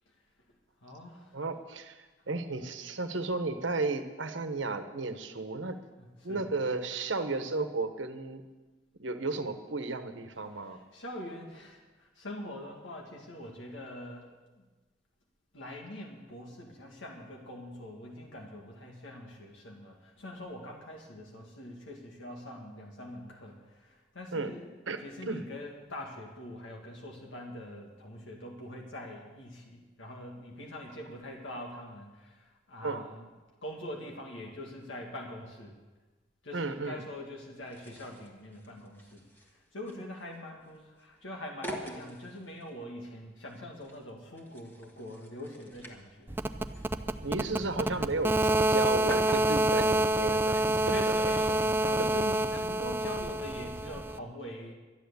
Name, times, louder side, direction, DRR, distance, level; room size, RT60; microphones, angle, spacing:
voice 1, 0.8-1.4 2.2-2.3 6.0-6.5 10.6-14.6 15.5-24.7 25.0-33.2 33.6-35.8 36.4-39.2 39.5-46.4 50.5-54.7, left 1 dB, 90° left, 0 dB, 2.0 m, -44 dB
voice 2, 1.3-5.8 6.2-8.4 9.0-10.8 24.3-24.5 24.9-25.5 32.8-33.0 36.5-37.0 47.2-50.9 51.2-51.3, right 3 dB, 90° right, 8 dB, 1.1 m, -34 dB
sound 1, 37.6-53.1, equal, 10° left, 1.4 m, -47 dB
sound 2, 46.3-54.2, right 1 dB, 10° right, 0.4 m, -28 dB
12.5 x 10.5 x 6.9 m, 1.2 s
head